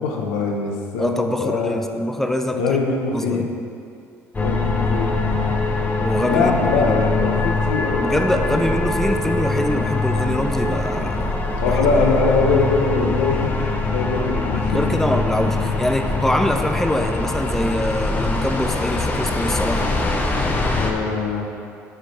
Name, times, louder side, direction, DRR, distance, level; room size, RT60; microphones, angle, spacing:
voice 1, 0.0-1.8 2.5-3.5 4.4-5.1 6.3-8.1 8.3-8.8 11.6-14.9 20.7-21.5, left 4 dB, 85° left, 1 dB, 0.8 m, -22 dB
voice 2, 1.0-2.8 3.1-3.5 6.0-6.8 8.0-11.8 14.7-20.0, left 1 dB, 5° left, 6 dB, 0.6 m, -24 dB
sound 1, 4.3-20.9, left 3 dB, 25° left, 0.9 m, -23 dB
8.1 x 4.4 x 4.1 m, 2.4 s
supercardioid pair, 70°, 7 cm